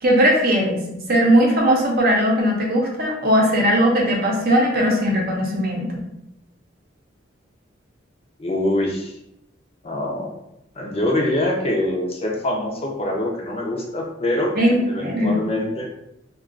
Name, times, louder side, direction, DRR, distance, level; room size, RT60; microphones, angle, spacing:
voice 1, 0.0-6.0 14.6-15.4, equal, 50° right, -1 dB, 0.7 m, -19 dB
voice 2, 8.4-9.1 9.8-10.3 10.8-14.5 14.9-15.9, left 1 dB, 30° left, 0 dB, 0.5 m, -24 dB
2.4 x 2.2 x 3.7 m, 0.82 s
head